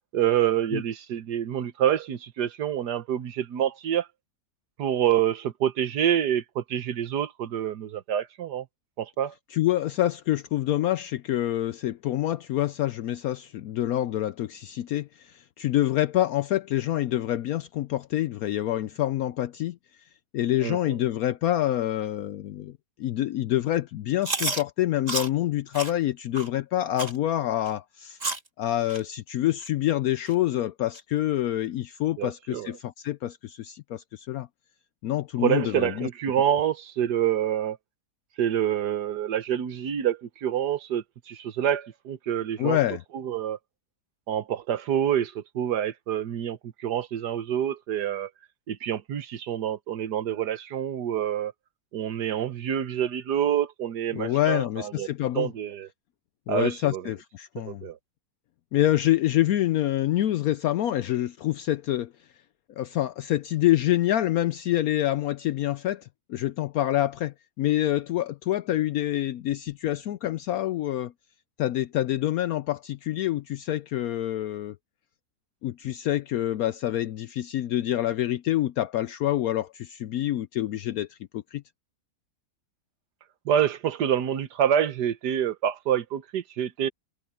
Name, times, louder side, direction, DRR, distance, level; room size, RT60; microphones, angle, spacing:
voice 1, 0.1-4.1 4.8-8.6 9.0-9.3 20.6-20.8 32.2-32.7 35.4-37.8 38.4-42.8 43.1-43.6 44.3-48.3 48.7-51.5 51.9-55.1 55.3-55.9 56.5-57.0 57.6-58.0 83.4-86.9, right 10 dB, 85° right, 1.6 m, -27 dB
voice 2, 9.5-19.8 20.3-22.7 23.0-28.2 28.6-34.5 35.0-36.1 42.6-43.0 54.1-55.5 56.5-57.8 58.7-62.1 62.8-71.1 71.6-74.8 75.6-81.6, left 13 dB, 70° left, 1.0 m, -26 dB
Chewing mastication, 24.2-24.6 25.1-25.3 25.7-25.9 26.3-26.5 27.0-27.2 27.7-27.8 28.2-28.5 28.9-29.0 29.6-29.7 30.3-30.4 30.9-31.0, right 2 dB, 25° right, 2.2 m, -30 dB
omnidirectional pair, 1.7 m